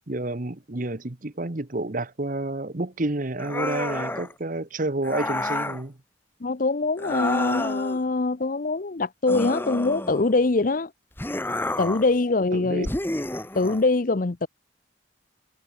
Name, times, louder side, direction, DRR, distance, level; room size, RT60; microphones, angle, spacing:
voice 1, 0.1-6.0 12.5-12.9, right 2 dB, 40° right, 1.2 m, -29 dB
sound 1, 3.4-4.3 5.0-5.8 7.0-8.0 9.3-10.4 11.2-12.1 12.8-13.9, left 1 dB, 10° left, 1.1 m, -30 dB
voice 2, 6.4-10.9 11.8-12.9 13.5-14.5, left 3 dB, 40° left, 0.6 m, -23 dB
head